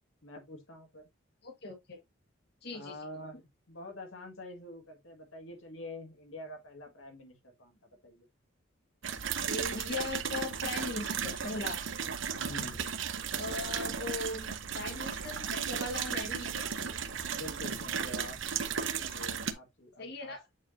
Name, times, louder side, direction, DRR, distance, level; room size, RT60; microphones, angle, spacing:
voice 1, 0.2-1.1 2.7-8.3 12.3-12.8 17.3-18.4 19.0-20.3, left 1 dB, 75° left, 1.9 m, -46 dB
voice 2, 1.4-2.0 2.6-3.0 9.5-11.8 13.3-16.7 20.0-20.4, left 2 dB, 55° left, 1.9 m, -39 dB
sound 1, 9.0-19.5, right 7 dB, 65° right, 0.8 m, -35 dB
8.4 x 4.4 x 2.7 m
head